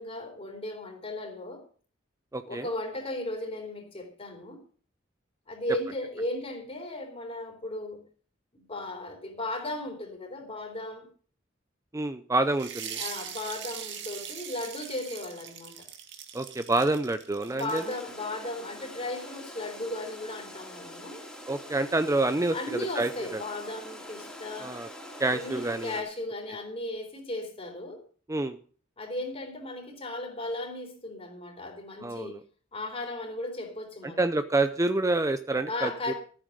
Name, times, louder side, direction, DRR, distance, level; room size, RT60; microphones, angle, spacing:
voice 1, 0.0-1.6 2.5-4.6 5.5-8.0 8.5-11.1 12.9-15.9 17.4-21.2 22.5-24.8 25.3-28.0 29.0-32.4 32.7-34.2 35.7-36.1, left 2 dB, 30° left, 3.8 m, -36 dB
voice 2, 2.3-2.7 11.9-13.0 16.3-17.8 21.5-23.4 24.6-24.9 25.2-26.0 28.3-28.6 32.0-32.4 34.0-36.1, right 2 dB, 15° right, 0.6 m, -28 dB
sound 1, 12.5-18.0, right 8 dB, 65° right, 2.0 m, -41 dB
sound 2, 17.7-26.0, equal, 5° left, 3.1 m, -44 dB
14.0 x 9.0 x 6.5 m
head